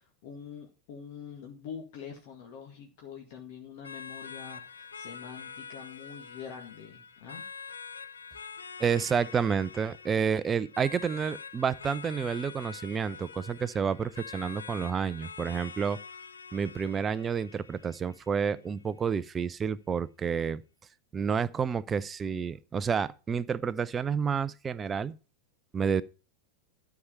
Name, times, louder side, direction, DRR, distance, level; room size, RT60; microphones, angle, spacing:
voice 1, 0.0-7.4, left 7 dB, 50° left, 2.1 m, -45 dB
sound 1, 3.8-18.8, left 6 dB, 70° left, 0.7 m, -45 dB
voice 2, 8.8-16.0 16.5-20.6 21.1-25.2 25.7-26.0, right 6 dB, 20° right, 0.6 m, -30 dB
13.0 x 4.9 x 5.5 m
figure-of-eight pair, 90°, 0 cm